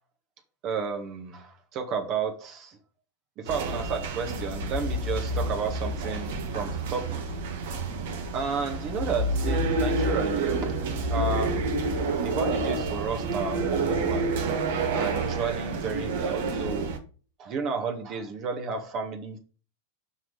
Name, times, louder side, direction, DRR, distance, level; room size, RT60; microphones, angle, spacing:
voice 1, 0.6-2.8 3.4-7.2 8.3-11.7 12.2-14.3 14.9-16.9 17.4-19.4, right 5 dB, 35° right, 5 dB, 1.6 m, -32 dB
sound 1, 3.5-17.0, right 2 dB, 55° right, 1.5 m, -29 dB
6.4 x 6.1 x 5.2 m, 0.37 s
figure-of-eight pair, 90°, 0 cm